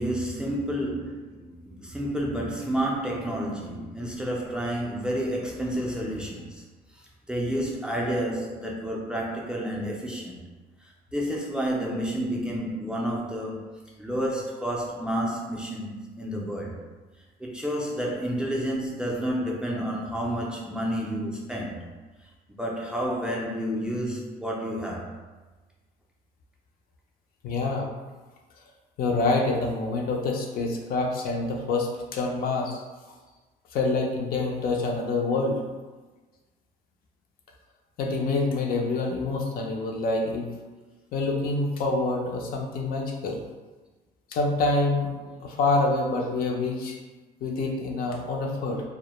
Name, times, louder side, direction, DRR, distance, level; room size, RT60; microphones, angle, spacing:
voice 1, 0.0-6.6 6.9-10.4 10.8-13.7 14.0-16.8 17.4-21.8 22.6-25.2, equal, 5° right, -3 dB, 0.4 m, -30 dB
voice 2, 27.4-27.9 29.0-32.8 33.7-35.6 38.0-40.5 41.1-43.4 44.3-45.1 45.4-47.0 47.4-48.8, left 3 dB, 60° left, 1 dB, 0.4 m, -26 dB
2.1 x 2.0 x 2.9 m, 1.3 s
cardioid pair, 110°, 17 cm